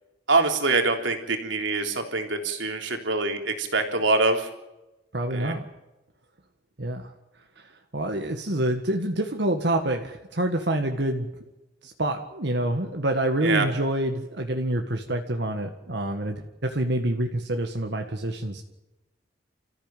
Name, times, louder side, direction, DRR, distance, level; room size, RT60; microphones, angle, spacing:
voice 1, 0.3-4.4 5.3-5.5 13.4-13.7, right 3 dB, 85° right, 4 dB, 3.6 m, -24 dB
voice 2, 5.1-5.6 6.8-7.1 7.9-11.3 11.8-18.6, right 1 dB, 65° right, 4 dB, 1.8 m, -27 dB
29.0 x 15.0 x 9.1 m, 1.0 s
head